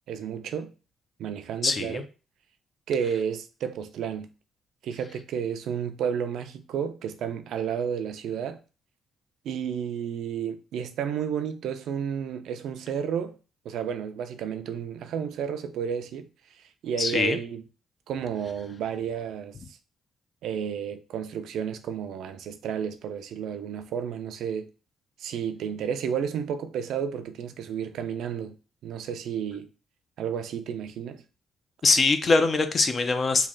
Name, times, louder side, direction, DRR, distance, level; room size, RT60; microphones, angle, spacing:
voice 1, 0.1-0.7 1.2-2.0 2.9-4.3 4.8-8.6 9.4-13.4 13.6-16.3 16.8-17.6 18.1-19.5 20.4-24.7 25.2-28.6 28.8-29.7 30.2-31.2, right 8 dB, 80° right, 0.4 m, -31 dB
voice 2, 1.6-2.0 17.0-17.4 31.8-33.5, left 3 dB, 40° left, 0.5 m, -22 dB
3.1 x 2.3 x 3.7 m
cardioid pair, 90°, 0 cm